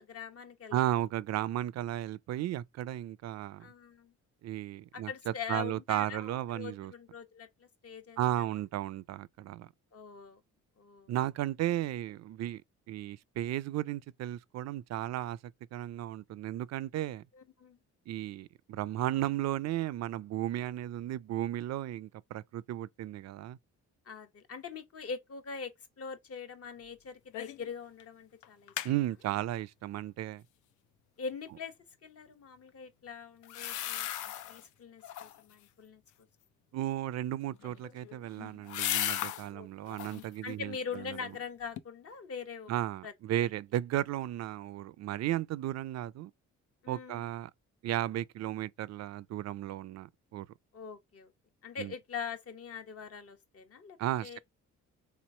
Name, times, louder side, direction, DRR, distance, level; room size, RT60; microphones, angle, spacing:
voice 1, 0.0-1.0 3.6-4.1 4.9-8.2 9.9-10.4 10.8-11.1 17.3-17.8 24.1-28.7 31.2-31.8 32.0-34.1 34.5-36.0 39.5-39.7 40.4-42.7 43.0-43.1 43.4-43.5 46.8-47.3 50.7-51.3 51.6-54.4, left 6 dB, 50° left, 1.1 m, -43 dB
voice 2, 0.7-3.7 4.4-6.9 8.2-9.7 11.1-12.6 12.9-17.2 18.1-23.6 28.8-30.4 36.7-41.2 42.7-46.3 46.9-47.5 47.8-50.5 51.8-51.9 54.0-54.4, right 13 dB, 60° right, 0.4 m, -34 dB
sound 1, 27.3-27.7 28.0-28.1 28.4-28.9 33.4-34.6 35.0-35.5 37.5-39.5 39.9-40.3 40.8-41.4 41.8-41.9, left 12 dB, 80° left, 0.5 m, -37 dB
3.4 x 3.1 x 4.2 m
cardioid pair, 90°, 30 cm